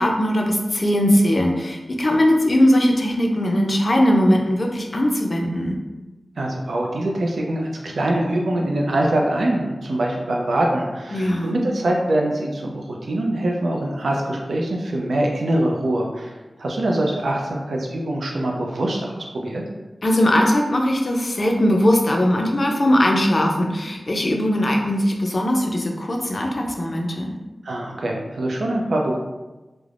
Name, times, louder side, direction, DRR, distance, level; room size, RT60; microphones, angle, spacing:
voice 1, 0.0-5.8 11.1-11.6 20.0-27.4, left 1 dB, 45° left, 1 dB, 0.4 m, -19 dB
voice 2, 6.4-19.6 27.6-29.2, right 1 dB, 85° right, 0 dB, 0.4 m, -23 dB
3.2 x 2.0 x 2.4 m, 1.1 s
wide cardioid pair, 100°, 0 cm